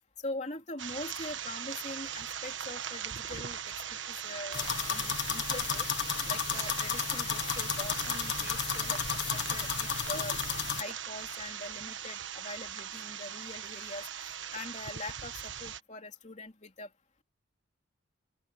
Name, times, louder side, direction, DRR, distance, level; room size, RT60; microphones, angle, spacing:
voice 1, 0.2-3.7 4.1-5.9 6.3-10.4 10.8-14.1 14.5-16.9, left 2 dB, 35° left, 3.0 m, -43 dB
sound 1, 0.8-15.8, right 9 dB, 70° right, 1.4 m, -40 dB
sound 2, 4.5-10.8, left 8 dB, 60° left, 1.4 m, -33 dB
open air
head